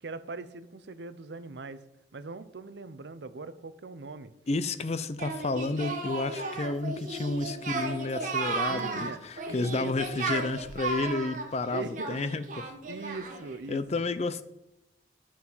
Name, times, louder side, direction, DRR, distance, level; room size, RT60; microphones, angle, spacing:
voice 1, 0.0-1.8 2.1-4.3 8.6-10.2 11.7-12.2 12.9-14.1, right 3 dB, 70° right, 0.7 m, -41 dB
voice 2, 4.5-12.7 13.7-14.4, left 2 dB, 35° left, 0.5 m, -31 dB
Singing, 5.2-13.5, right 3 dB, 45° right, 1.4 m, -34 dB
12.0 x 6.2 x 5.5 m
head